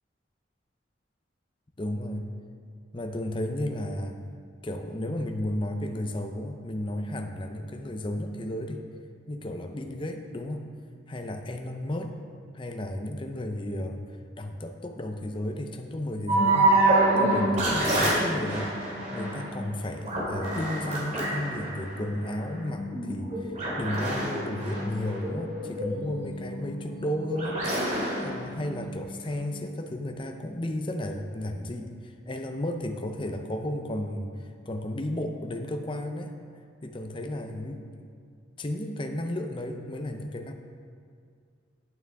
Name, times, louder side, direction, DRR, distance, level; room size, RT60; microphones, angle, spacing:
voice 1, 1.8-2.3 2.9-4.2 4.6-8.8 9.3-10.6 11.1-12.2 12.5-14.0 14.4-16.7 17.2-18.7 19.1-27.6 28.2-36.3 36.8-38.1 38.6-40.5, left 1 dB, 25° left, 5 dB, 0.6 m, -33 dB
sound 1, 16.3-29.3, right 2 dB, 40° right, 2.5 m, -27 dB
9.2 x 9.1 x 3.5 m, 2.2 s
head